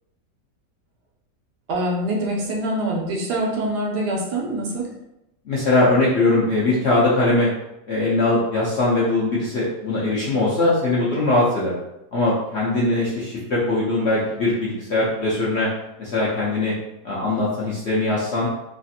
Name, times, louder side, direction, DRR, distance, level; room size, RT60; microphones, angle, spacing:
voice 1, 1.7-4.9, right 1 dB, 80° right, -1 dB, 1.3 m, -24 dB
voice 2, 5.5-7.5 7.9-11.7 12.1-15.7 16.0-16.7 17.0-18.5, left 2 dB, 60° left, -7 dB, 0.7 m, -21 dB
3.1 x 2.4 x 2.7 m, 0.86 s
omnidirectional pair, 1.8 m